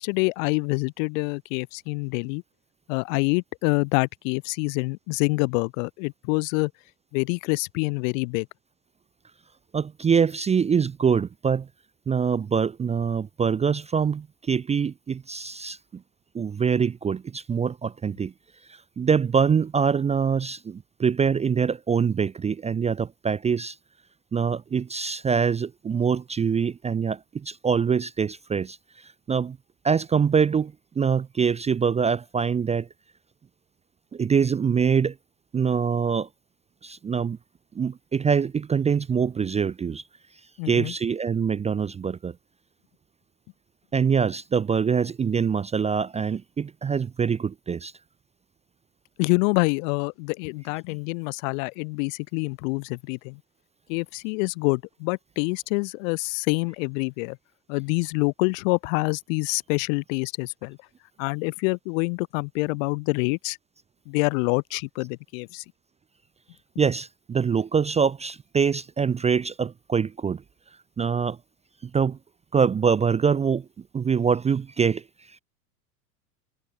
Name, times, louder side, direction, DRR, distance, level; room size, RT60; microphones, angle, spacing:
voice 1, 0.0-2.4 2.9-6.7 7.1-8.4 40.6-40.9 49.2-53.4 53.9-57.4 57.7-60.8 61.2-63.6 64.1-65.6, left 31 dB, 60° left, 1.5 m, -26 dB
voice 2, 9.7-11.7 12.1-16.0 16.3-18.3 18.7-23.8 24.3-29.6 29.8-32.9 34.1-35.2 35.5-36.3 36.8-37.4 37.7-40.0 40.6-42.4 43.9-47.9 66.8-70.4 71.0-71.4 71.8-72.2 72.5-73.7 73.9-75.4, right 6 dB, 15° right, 0.6 m, -24 dB
hypercardioid pair, 90°, 44 cm